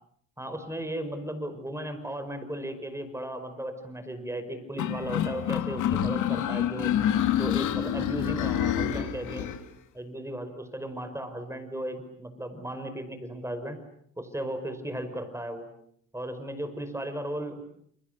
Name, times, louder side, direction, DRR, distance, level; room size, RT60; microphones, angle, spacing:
voice 1, 0.4-6.9 7.3-9.5 9.9-13.8 14.2-15.7 16.1-17.6, right 1 dB, 10° right, 9 dB, 5.4 m, -36 dB
sound 1, 4.8-9.6, left 10 dB, 80° left, 2.6 m, -27 dB
30.0 x 29.0 x 6.8 m, 0.67 s
cardioid pair, 90°, 30 cm